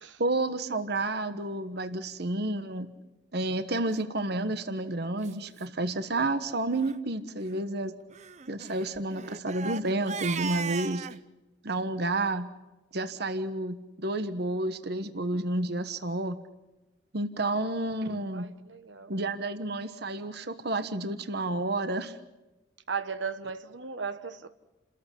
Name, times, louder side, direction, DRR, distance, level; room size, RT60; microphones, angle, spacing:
voice 1, 0.2-2.9 3.3-7.9 8.5-11.1 11.6-12.5 12.9-16.4 17.1-18.5 19.1-22.2, right 2 dB, 60° right, 1.3 m, -30 dB
Crying sobbing, 4.3-4.6 5.2-5.3 5.6-5.7 6.0-6.3 6.7-7.0 8.1-11.2, right 6 dB, 40° right, 0.7 m, -38 dB
voice 2, 18.3-19.1 22.9-24.5, right 5 dB, 85° right, 1.4 m, -36 dB
29.5 x 14.0 x 10.0 m
head